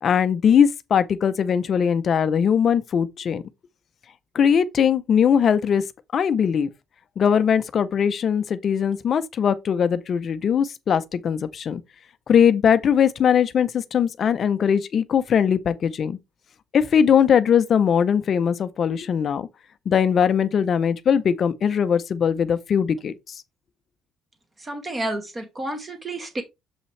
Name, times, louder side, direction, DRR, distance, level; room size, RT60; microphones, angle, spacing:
voice 1, 0.0-3.4 4.3-5.8 6.1-6.7 7.2-11.8 12.3-16.2 16.7-19.5 19.9-23.4, left 7 dB, 40° left, 0.6 m, -20 dB
voice 2, 24.6-26.4, right 1 dB, 20° right, 2.0 m, -30 dB
7.3 x 5.5 x 3.2 m
cardioid pair, 145°, 0 cm